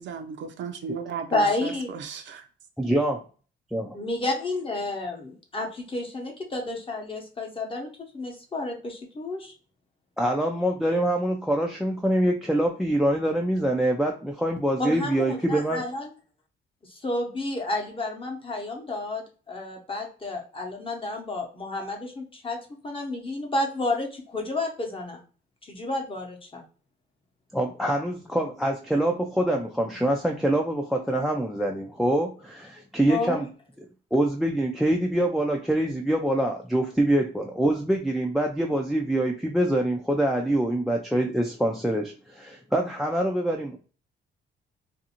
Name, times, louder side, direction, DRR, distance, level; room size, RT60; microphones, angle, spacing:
voice 1, 0.0-2.4, right 6 dB, 65° right, 0.5 m, -35 dB
voice 2, 1.3-1.9 3.9-9.5 14.8-16.1 16.9-22.6 22.8-25.2 25.6-26.6 33.1-33.4, left 2 dB, 25° left, 0.8 m, -30 dB
voice 3, 2.8-3.2 3.7-3.9 10.2-15.8 27.5-33.5 34.1-43.8, right 1 dB, ahead, 0.3 m, -25 dB
2.5 x 2.4 x 2.8 m
cardioid pair, 90°, 20 cm